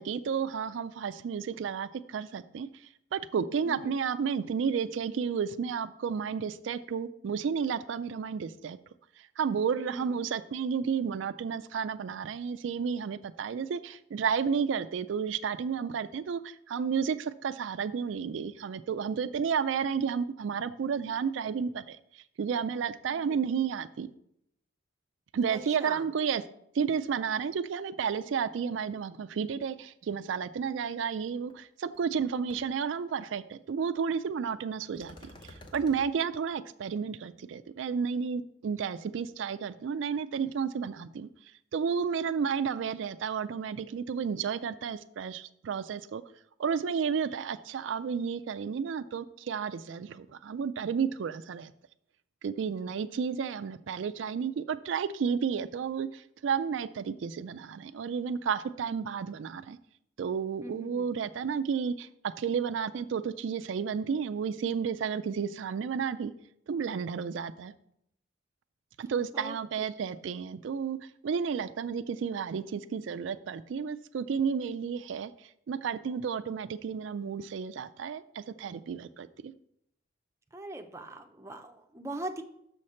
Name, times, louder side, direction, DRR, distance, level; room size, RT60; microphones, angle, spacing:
voice 1, 0.0-2.7 3.1-8.8 9.4-24.1 25.3-26.4 26.7-35.1 35.4-41.3 41.7-46.2 46.6-51.7 52.4-59.8 60.2-62.1 62.4-66.3 66.7-67.7 69.0-71.0 71.2-75.3 75.7-79.5, right 6 dB, 75° right, 0.4 m, -32 dB
voice 2, 9.8-10.1 23.1-23.4 25.5-26.1 60.6-61.0 69.3-69.6 80.5-82.4, right 1 dB, 15° right, 0.5 m, -41 dB
sound 1, 31.5-31.6 31.9-32.2 32.5-32.6 35.0-36.0, left 1 dB, 25° left, 0.7 m, -49 dB
6.5 x 6.4 x 4.3 m
head